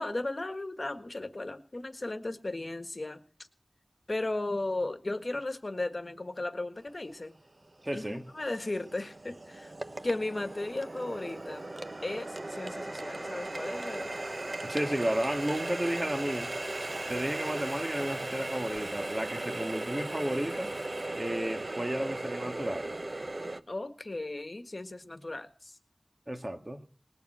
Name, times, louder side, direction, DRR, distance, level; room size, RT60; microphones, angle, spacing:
voice 1, 0.0-3.2 4.1-7.3 7.9-9.7 10.0-11.7 12.0-14.1 23.7-25.7, left 2 dB, 60° left, 1.6 m, -35 dB
Water tap faucet, 7.1-7.2 7.8-23.6, right 2 dB, 60° right, 1.0 m, -37 dB
voice 2, 7.8-8.3 14.6-16.5 17.1-20.7 21.2-22.9 26.3-26.8, right 1 dB, 35° right, 2.0 m, -33 dB
20.5 x 7.1 x 7.9 m
wide cardioid pair, 55°, 0 cm